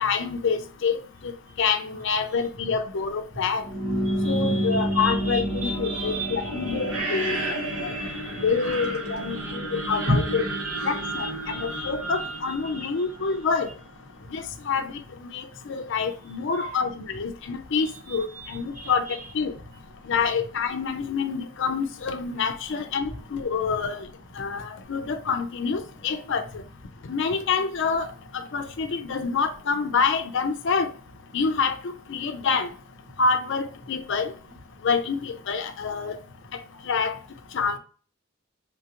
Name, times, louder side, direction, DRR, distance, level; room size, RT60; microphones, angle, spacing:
voice 1, 0.0-1.3 1.6-3.6 4.2-7.4 7.8-7.9 8.4-10.4 10.8-13.7 14.3-14.9 15.2-19.1 19.3-19.5 20.1-24.1 24.4-26.4 27.1-28.1 28.3-30.9 31.3-31.8 32.1-32.7 33.2-34.3 34.8-36.2 36.9-37.1 37.5-37.8, left 5 dB, 55° left, 0.5 m, -27 dB
sound 1, 3.5-13.4, right 1 dB, 75° right, 1.0 m, -30 dB
voice 2, 4.2-8.9 9.2-12.4 12.6-12.9 16.5-16.9 18.1-19.3, right 1 dB, 35° right, 1.0 m, -34 dB
3.9 x 2.4 x 2.8 m
head